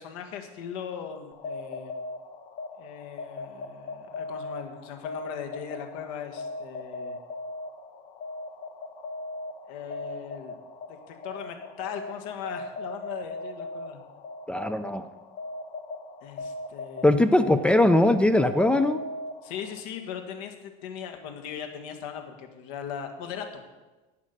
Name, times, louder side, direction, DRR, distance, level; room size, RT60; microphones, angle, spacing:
voice 1, 0.0-1.9 2.8-7.2 9.7-10.6 10.9-14.0 16.2-17.6 19.4-23.6, left 8 dB, 75° left, 5 dB, 1.7 m, -39 dB
sound 1, 1.3-19.8, left 2 dB, 50° left, 1.0 m, -39 dB
voice 2, 14.5-15.1 17.0-19.0, left 1 dB, 5° left, 11 dB, 0.4 m, -21 dB
11.5 x 8.5 x 6.6 m, 1.2 s
cardioid pair, 150°, 18 cm